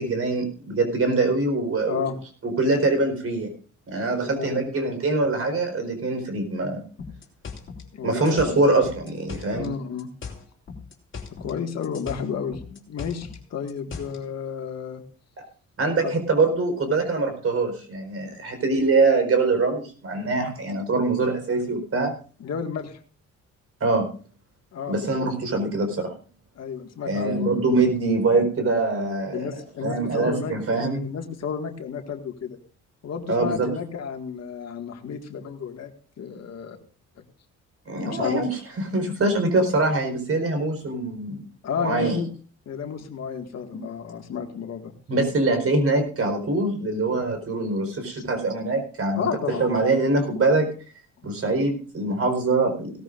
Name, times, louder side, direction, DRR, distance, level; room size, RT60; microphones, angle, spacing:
voice 1, 0.0-2.1 2.4-3.5 3.9-6.8 8.0-9.7 15.8-22.1 23.8-24.0 24.9-26.1 27.0-29.5 29.8-31.0 33.3-33.7 37.9-41.4 41.8-42.2 45.1-49.3 49.6-50.7 51.2-52.9, right 3 dB, 50° right, 5 dB, 4.5 m, -23 dB
voice 2, 1.8-2.2 4.1-4.7 7.9-8.7 9.5-10.1 11.4-15.0 16.0-16.1 22.4-23.0 24.7-25.0 26.6-27.5 29.3-30.5 31.0-32.6 33.0-35.9 36.2-36.8 37.2-37.3 38.0-38.4 41.6-42.3 42.7-44.9 49.1-49.7, left 7 dB, 60° left, 5 dB, 1.9 m, -32 dB
sound 1, 7.0-9.7 10.0-11.6 11.8-14.2, left 5 dB, 40° left, 3.4 m, -38 dB
17.5 x 13.5 x 2.5 m, 0.40 s
cardioid pair, 90°, 30 cm